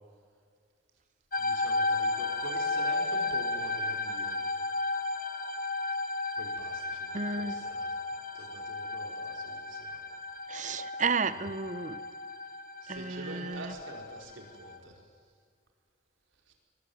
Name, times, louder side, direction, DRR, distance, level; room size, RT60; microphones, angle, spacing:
sound 1, 1.3-14.8, left 3 dB, 45° left, 1.5 m, -34 dB
voice 1, 1.4-4.4 6.4-7.9 8.4-9.9 12.8-14.9 16.5-16.6, right 1 dB, 90° right, 2 dB, 5.0 m, -46 dB
voice 2, 7.1-7.6 10.5-12.0 12.9-13.7, right 4 dB, 40° right, 14 dB, 0.9 m, -32 dB
22.0 x 21.0 x 9.6 m, 2.1 s
head